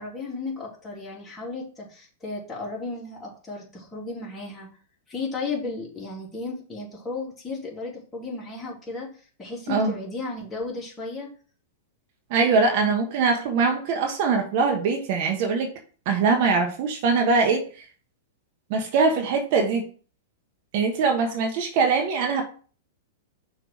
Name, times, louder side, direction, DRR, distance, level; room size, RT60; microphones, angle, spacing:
voice 1, 0.0-4.7 5.1-9.1 9.4-11.3, left 3 dB, 15° left, -4 dB, 3.1 m, -34 dB
voice 2, 12.3-15.7 16.0-17.8 18.7-19.8 20.7-22.4, right 4 dB, 50° right, 4 dB, 1.4 m, -22 dB
6.3 x 3.5 x 6.0 m, 0.40 s
hypercardioid pair, 110°, 0 cm